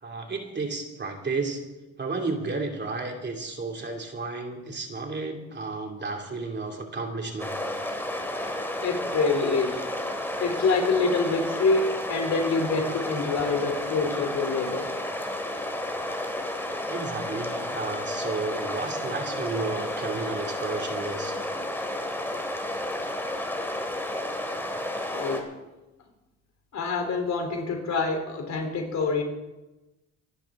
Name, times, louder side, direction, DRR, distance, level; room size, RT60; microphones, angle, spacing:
voice 1, 0.0-1.6 2.0-7.6 16.9-21.4, right 3 dB, 35° right, 2 dB, 2.8 m, -32 dB
sound 1, 7.4-25.4, left 1 dB, 5° left, 2.6 m, -32 dB
voice 2, 8.8-9.8 10.4-14.9 25.1-25.5 26.7-29.2, left 4 dB, 65° left, 3 dB, 3.5 m, -26 dB
26.0 x 10.5 x 3.8 m, 1.0 s
cardioid pair, 90°, 30 cm